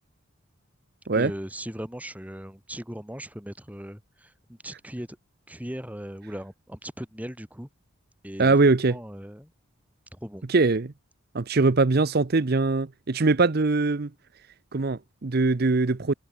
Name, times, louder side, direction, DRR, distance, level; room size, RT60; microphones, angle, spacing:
voice 1, 1.1-5.1 5.5-7.7 8.2-8.5 8.9-9.5 10.1-10.4, equal, 5° right, 2.8 m, -38 dB
voice 2, 8.4-9.0 10.5-10.9 11.3-14.1 14.7-16.1, right 3 dB, 50° right, 0.7 m, -22 dB
head